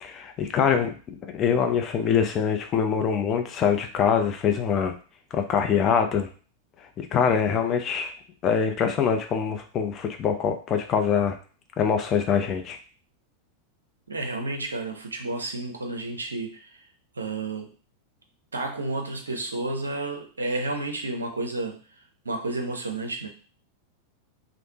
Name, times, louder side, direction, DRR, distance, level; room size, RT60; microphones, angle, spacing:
voice 1, 0.0-4.9 5.3-6.3 7.0-8.1 8.4-11.4 11.8-12.8, left 7 dB, 30° left, 5 dB, 0.5 m, -24 dB
voice 2, 14.1-16.7 17.2-17.7 18.5-21.8 22.2-23.3, right 2 dB, 75° right, 4 dB, 0.5 m, -31 dB
3.2 x 2.0 x 2.8 m, 0.39 s
figure-of-eight pair, 90°, 0 cm